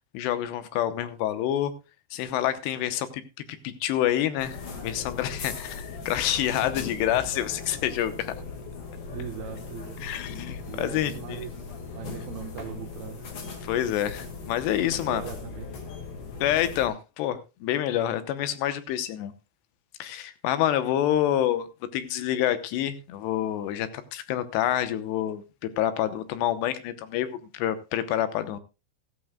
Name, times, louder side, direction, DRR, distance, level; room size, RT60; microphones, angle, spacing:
voice 1, 0.1-1.7 2.1-3.2 3.5-8.3 10.0-11.4 13.6-15.2 16.4-19.3 20.0-21.7 21.9-25.4 25.8-28.6, left 11 dB, 75° left, 2.9 m, -27 dB
sound 1, 4.4-16.9, left 4 dB, 45° left, 2.0 m, -39 dB
voice 2, 9.1-10.1 10.7-13.3 14.7-15.7, right 8 dB, 65° right, 2.8 m, -40 dB
14.5 x 14.5 x 2.3 m
omnidirectional pair, 5.4 m